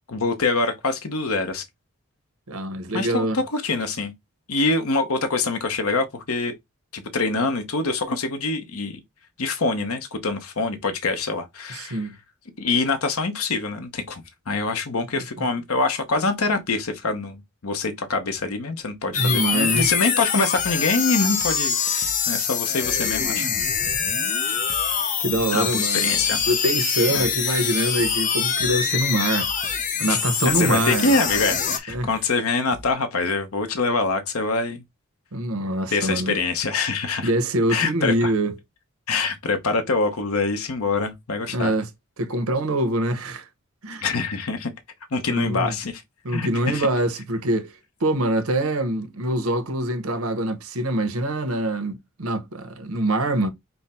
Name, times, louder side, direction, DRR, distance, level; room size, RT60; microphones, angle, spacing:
voice 1, 0.1-1.6 2.9-4.1 4.5-6.5 6.9-9.0 9.4-12.0 12.6-23.5 25.5-26.4 27.1-27.3 30.1-34.8 35.9-37.3 37.7-38.3 39.1-41.7 44.0-44.7 45.1-46.0 46.3-46.9, left 3 dB, 85° left, 0.9 m, -25 dB
voice 2, 2.5-3.4 11.7-12.2 15.1-15.2 19.1-19.9 23.8-23.9 25.2-29.5 30.0-31.1 31.9-32.1 35.3-36.4 37.2-38.5 41.5-41.9 42.2-43.4 43.8-44.0 45.3-45.8 46.2-47.7 48.0-53.5, right 1 dB, 85° right, 1.0 m, -24 dB
sound 1, 19.1-31.8, left 7 dB, 35° left, 0.7 m, -24 dB
sound 2, 19.8-20.1 20.6-21.7 22.0-22.5 22.8-23.3 23.9-25.0 25.3-25.8 26.1-26.6 27.2-28.3 28.6-29.1 29.4-29.9 30.4-31.6 31.9-32.4 32.7-32.9, right 3 dB, 25° right, 0.6 m, -42 dB
5.6 x 2.1 x 4.2 m
head